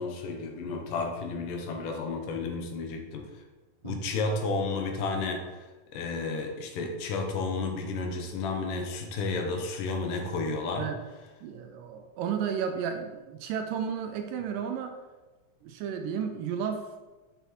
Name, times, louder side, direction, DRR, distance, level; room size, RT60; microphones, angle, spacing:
voice 1, 0.0-3.3 3.8-5.7 5.9-10.8, left 3 dB, 75° left, 3 dB, 2.3 m, -32 dB
voice 2, 11.4-15.0 15.6-16.9, right 7 dB, 80° right, 5 dB, 2.1 m, -33 dB
6.7 x 6.7 x 3.1 m, 1.2 s
omnidirectional pair, 4.0 m